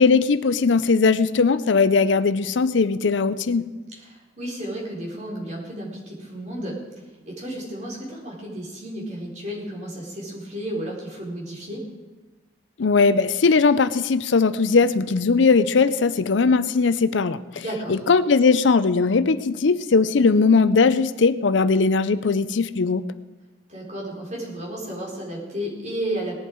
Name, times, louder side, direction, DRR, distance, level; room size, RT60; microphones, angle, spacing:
voice 1, 0.0-3.6 12.8-17.6 17.9-23.0, left 4 dB, 85° left, 14 dB, 0.6 m, -19 dB
voice 2, 4.0-6.8 7.3-11.8 17.6-18.0 20.2-20.3 23.7-26.4, right 1 dB, 40° right, -4 dB, 3.9 m, -32 dB
18.5 x 11.0 x 4.6 m, 1.2 s
head